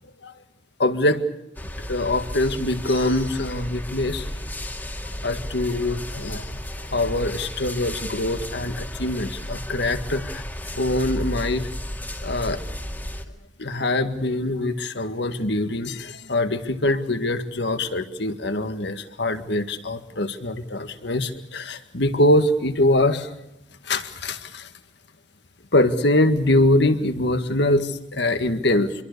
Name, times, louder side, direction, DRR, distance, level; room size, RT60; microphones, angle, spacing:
voice 1, 0.8-1.2 1.9-4.3 5.2-6.5 6.9-10.4 10.8-11.7 12.2-12.6 13.6-23.3 23.9-24.7 25.7-28.9, left 1 dB, 65° left, 9 dB, 1.9 m, -23 dB
sound 1, 1.6-13.3, left 1 dB, 10° left, 2.1 m, -33 dB
26.0 x 23.0 x 6.8 m, 0.85 s
head